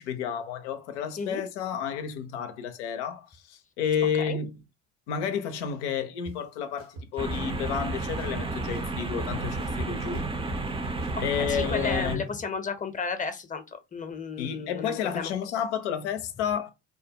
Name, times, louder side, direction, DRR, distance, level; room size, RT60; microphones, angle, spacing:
voice 1, 0.0-4.6 5.1-10.4 11.2-12.2 14.4-16.7, left 8 dB, 85° left, 0.5 m, -31 dB
sound 1, 6.3-6.4 6.8-7.8 8.2-9.3 9.6-12.0, right 3 dB, 80° right, 1.0 m, -42 dB
sound 2, 7.2-12.2, right 3 dB, 15° right, 0.5 m, -31 dB
voice 2, 11.4-15.3, left 5 dB, 25° left, 0.7 m, -33 dB
2.4 x 2.1 x 2.8 m
hypercardioid pair, 60°, 34 cm